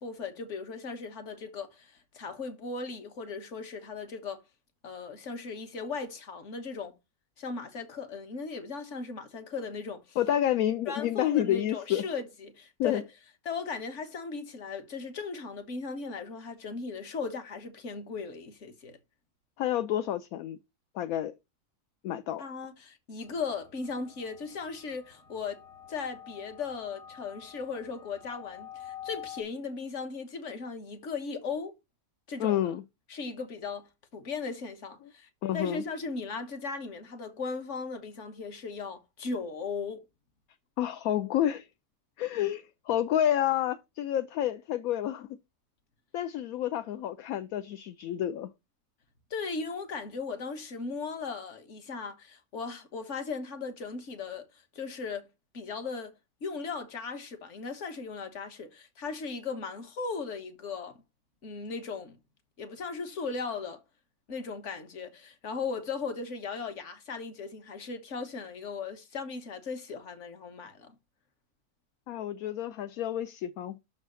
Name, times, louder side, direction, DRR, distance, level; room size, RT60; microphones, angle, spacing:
voice 1, 0.0-4.4 4.8-7.0 7.4-10.2 10.9-13.0 13.4-19.0 22.4-31.8 32.3-32.6 33.1-40.1 49.3-56.1 56.4-61.0 61.4-62.2 62.6-63.8 64.3-70.9, left 4 dB, 50° left, 1.5 m, -37 dB
voice 2, 10.2-12.0 12.8-13.0 19.6-20.6 20.9-21.3 22.0-22.4 32.4-32.8 35.4-35.8 40.8-41.7 42.2-45.4 46.1-48.5 72.1-73.8, left 11 dB, 70° left, 1.0 m, -29 dB
sound 1, 23.2-29.4, left 10 dB, 30° left, 1.0 m, -48 dB
6.5 x 4.2 x 6.2 m
omnidirectional pair, 1.7 m